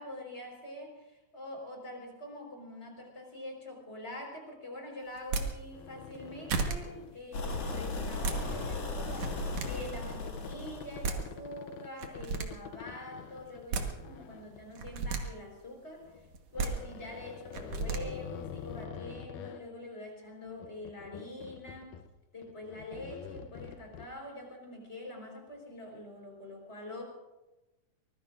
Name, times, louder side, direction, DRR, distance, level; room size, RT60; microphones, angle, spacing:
voice 1, 0.0-22.0 22.3-27.0, left 1 dB, 15° left, 0 dB, 4.5 m, -45 dB
sound 1, 5.2-5.5 6.1-6.2 6.5-6.8 8.0-8.4 9.1-9.7 10.7-10.8 11.0-11.2 12.0-12.5 13.5-13.9 14.7-15.2 16.3-16.7 17.5-18.0, right 4 dB, 55° right, 2.3 m, -32 dB
sound 2, 5.7-7.2 7.7-8.0 8.5-15.2 16.0-19.6 20.5-22.2 22.4-24.1, left 8 dB, 75° left, 2.2 m, -47 dB
sound 3, 7.3-11.3, left 3 dB, 50° left, 3.1 m, -37 dB
24.0 x 21.0 x 2.6 m, 1.1 s
omnidirectional pair, 4.0 m